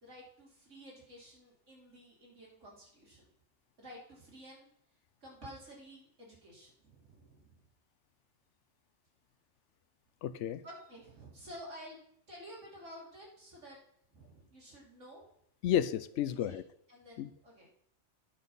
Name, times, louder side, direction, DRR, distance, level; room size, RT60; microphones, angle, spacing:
voice 1, 0.0-3.3 3.8-4.7 5.2-7.6 10.6-12.0 12.3-13.8 14.1-15.2 16.5-16.6 16.9-17.7, equal, 90° right, -3 dB, 3.4 m, -51 dB
voice 2, 10.2-10.6 15.6-16.6 17.2-17.3, left 10 dB, 75° left, 15 dB, 0.9 m, -32 dB
9.9 x 6.0 x 5.4 m, 0.67 s
omnidirectional pair, 1.2 m